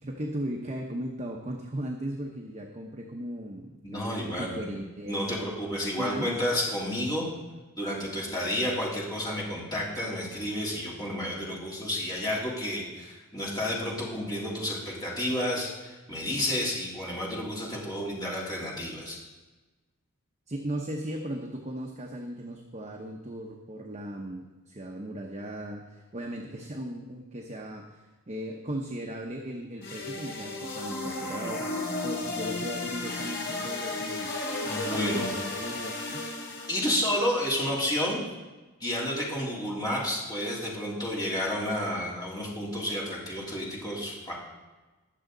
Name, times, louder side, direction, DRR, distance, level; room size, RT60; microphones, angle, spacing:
voice 1, 0.0-5.2 6.0-6.4 20.5-31.7 32.0-34.3 34.9-36.3, right 1 dB, 30° right, 0 dB, 0.9 m, -37 dB
voice 2, 3.8-4.7 5.1-7.3 7.8-19.2 34.6-35.3 36.7-38.2 38.8-44.3, left 1 dB, 20° left, -5 dB, 3.2 m, -31 dB
sound 1, 29.8-36.9, left 2 dB, 50° left, 3.0 m, -34 dB
20.5 x 7.2 x 3.9 m, 1.2 s
head